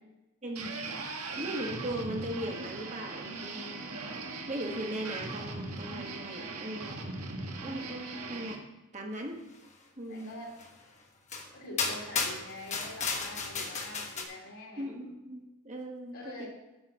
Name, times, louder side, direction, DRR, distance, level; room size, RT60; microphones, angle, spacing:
voice 1, 0.4-0.8 1.3-3.8 4.5-7.1 7.6-8.6 8.9-9.4 10.0-10.4 14.8-16.5, right 1 dB, 30° right, 2 dB, 1.3 m, -38 dB
sound 1, 0.6-8.6, right 3 dB, 90° right, 1.5 m, -39 dB
voice 2, 10.1-10.5 11.5-14.8 16.1-16.5, left 1 dB, 65° left, -3 dB, 3.2 m, -45 dB
sound 2, 10.6-10.7 11.3-11.5 11.8-14.2, left 4 dB, 30° left, 1.2 m, -33 dB
9.6 x 6.3 x 6.4 m, 1.0 s
head